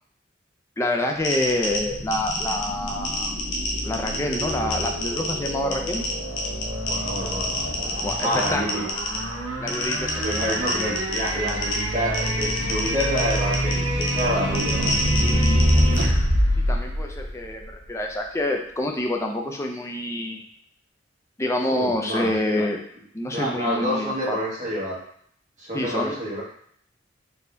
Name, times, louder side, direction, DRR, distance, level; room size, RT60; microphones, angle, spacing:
voice 1, 0.8-3.5 3.8-6.0 8.0-8.9 9.6-10.8 16.7-20.4 21.4-22.8 23.1-24.4 25.7-26.2, left 1 dB, 15° left, 2 dB, 0.5 m, -27 dB
sound 1, 1.2-16.0, left 2 dB, 85° left, 0.8 m, -30 dB
sound 2, 1.7-17.9, equal, 90° right, 1.0 m, -26 dB
voice 2, 6.8-8.9 10.2-15.5 21.7-22.7 23.3-24.9 25.6-26.4, equal, 40° right, -6 dB, 1.5 m, -28 dB
4.2 x 2.8 x 3.3 m, 0.64 s
head